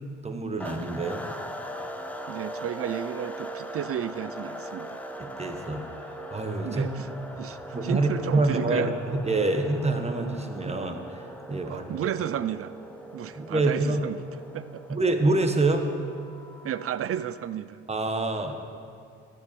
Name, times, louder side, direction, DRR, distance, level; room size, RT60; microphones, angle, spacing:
voice 1, 0.2-1.3 5.2-7.1 7.7-11.8 13.4-14.0 14.9-15.9 17.9-18.5, right 2 dB, 20° right, 5 dB, 1.3 m, -27 dB
sound 1, 0.6-17.3, equal, 5° left, 0.9 m, -40 dB
voice 2, 2.3-5.0 6.6-7.1 7.4-8.9 11.6-12.7 13.1-14.2 14.5-15.0 16.6-17.8, right 10 dB, 50° right, 15 dB, 0.5 m, -32 dB
14.0 x 8.1 x 6.9 m, 2.4 s
cardioid pair, 90°, 30 cm